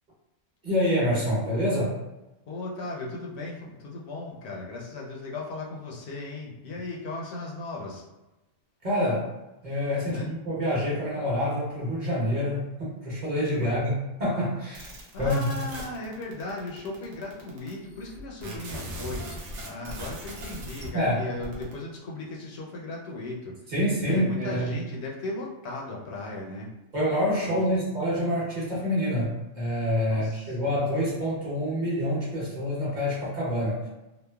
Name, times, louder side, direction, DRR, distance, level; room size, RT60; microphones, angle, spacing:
voice 1, 0.6-1.9 8.8-9.3 9.6-15.6 20.9-21.2 23.7-24.7 26.9-33.9, equal, 40° right, -8 dB, 1.0 m, -27 dB
voice 2, 2.5-8.0 10.1-10.3 13.5-13.8 15.1-19.3 19.6-23.5 24.0-26.7 27.5-27.8 30.1-30.7, left 2 dB, 70° left, -2 dB, 0.8 m, -37 dB
sound 1, 14.7-20.9 21.2-21.8, right 1 dB, 80° right, 1.0 m, -39 dB
3.0 x 2.0 x 2.2 m, 1.0 s
omnidirectional pair, 1.2 m